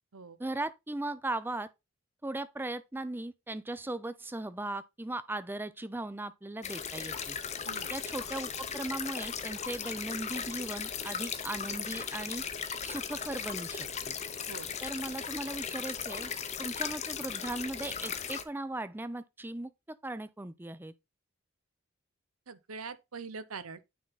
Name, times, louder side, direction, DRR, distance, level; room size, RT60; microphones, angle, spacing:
voice 1, 0.4-1.7 2.2-7.4 7.9-12.4 12.8-14.2 14.8-16.3 16.6-20.9, right 2 dB, 10° right, 0.5 m, -38 dB
sound 1, 6.6-18.4, left 7 dB, 30° left, 0.7 m, -37 dB
voice 2, 22.5-23.9, right 4 dB, 80° right, 0.8 m, -43 dB
9.4 x 3.8 x 4.0 m
head